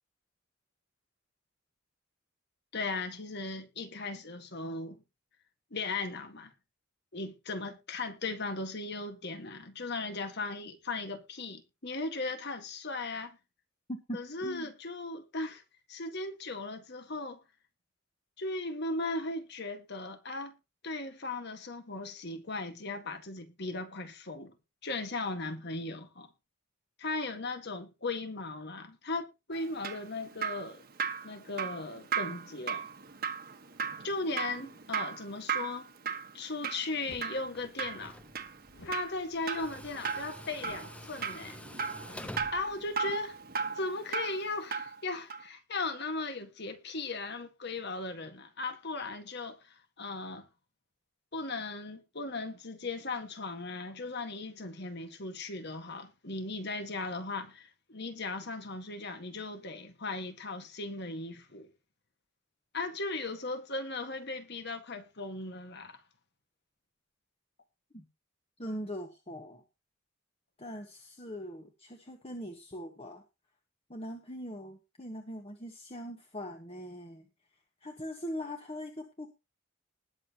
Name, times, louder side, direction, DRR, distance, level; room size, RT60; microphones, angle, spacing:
voice 1, 2.7-5.0 5.7-6.5 7.1-13.4 14.1-15.6 15.9-17.4 18.4-20.5 20.8-24.5 24.8-26.3 27.0-30.8 31.2-32.8 34.0-35.9 36.3-38.2 38.8-41.6 42.5-43.4 43.8-50.5 51.3-61.7 62.7-66.0, left 3 dB, 55° left, 1.8 m, -37 dB
voice 2, 13.9-14.7 67.9-68.0 68.6-69.6 70.6-73.2 73.9-77.2 77.8-79.3, equal, 30° left, 1.5 m, -41 dB
Drip, 29.5-45.0 45.3-45.4, right 6 dB, 45° right, 1.5 m, -37 dB
sound 1, 37.0-37.3 38.7-40.3 40.6-41.0 41.3-41.4 41.7-43.3, left 1 dB, 85° left, 1.8 m, -53 dB
Tools, 37.3-43.6, left 1 dB, 5° left, 0.7 m, -49 dB
20.0 x 7.2 x 3.0 m
head